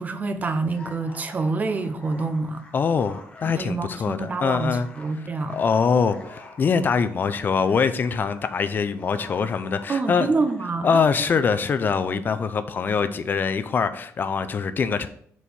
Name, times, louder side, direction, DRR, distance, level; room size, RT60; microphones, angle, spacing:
voice 1, 0.0-2.6 3.6-5.6 9.9-10.9, right 3 dB, 30° right, 0.6 m, -27 dB
sound 1, 0.6-10.8, left 2 dB, 20° left, 1.1 m, -47 dB
voice 2, 2.7-4.9 5.5-10.3 10.8-15.1, left 5 dB, 40° left, 0.4 m, -23 dB
4.6 x 4.2 x 5.2 m
cardioid pair, 115°, 5 cm